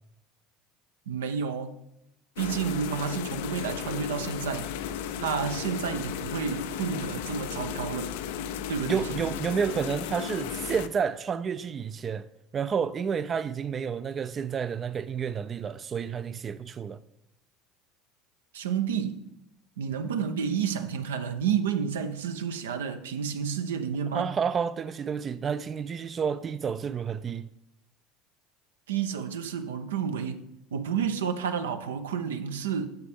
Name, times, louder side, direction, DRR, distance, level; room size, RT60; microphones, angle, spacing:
voice 1, 1.1-1.7 2.4-4.7 5.2-8.2 8.7-9.3 18.5-19.2 19.8-24.3 28.9-32.9, right 7 dB, 85° right, 0.6 m, -30 dB
sound 1, 2.4-10.9, left 8 dB, 75° left, 0.4 m, -35 dB
voice 2, 8.8-12.3 12.5-17.0 24.1-27.5, right 6 dB, 35° right, 0.3 m, -30 dB
8.0 x 6.8 x 3.4 m
hypercardioid pair, 75°, 0 cm